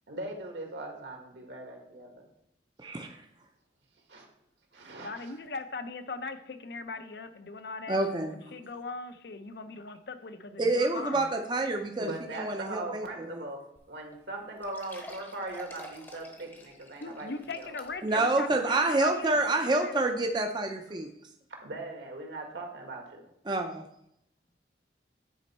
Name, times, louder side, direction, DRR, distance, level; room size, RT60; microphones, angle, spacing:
voice 1, 0.1-2.2 3.0-3.1 4.1-4.2 4.7-5.2 12.0-13.6 13.9-17.3 17.6-17.7 21.6-23.3, right 2 dB, 75° right, 1 dB, 1.7 m, -40 dB
voice 2, 5.0-11.3 17.0-20.1, left 3 dB, 60° left, 9 dB, 0.6 m, -40 dB
voice 3, 7.9-8.3 10.6-13.1 13.3-13.4 18.0-21.1 23.5-23.8, right 2 dB, 25° right, 4 dB, 0.5 m, -28 dB
sound 1, 13.8-13.9 14.1-14.2 14.6-18.2 18.7-18.8 19.4-19.5, left 1 dB, 10° left, 0.8 m, -49 dB
9.2 x 4.3 x 4.3 m, 0.76 s
head